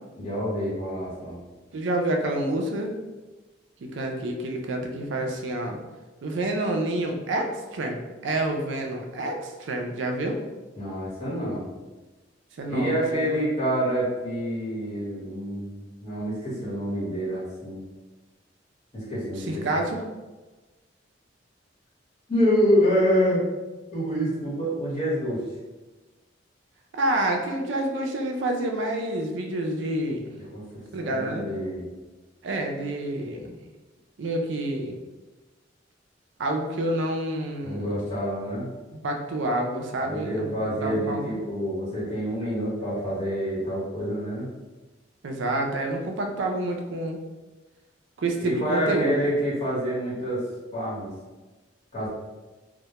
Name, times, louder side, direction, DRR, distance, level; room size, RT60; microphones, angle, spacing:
voice 1, 0.2-1.4 10.7-11.7 12.7-17.8 18.9-19.6 22.3-23.4 23.9-25.4 30.5-30.6 31.0-31.8 37.6-38.7 40.0-44.5 48.4-50.4 50.7-51.1 51.9-52.1, equal, 35° left, -9 dB, 1.0 m, -27 dB
voice 2, 1.7-2.9 3.8-5.8 6.2-10.4 12.6-13.2 19.5-20.0 26.9-30.2 30.9-31.5 32.4-33.5 34.2-34.9 36.4-38.0 38.9-40.5 40.8-41.3 45.2-47.2 48.2-49.3, right 1 dB, 75° right, 3 dB, 0.4 m, -28 dB
2.1 x 2.1 x 2.8 m, 1.2 s
head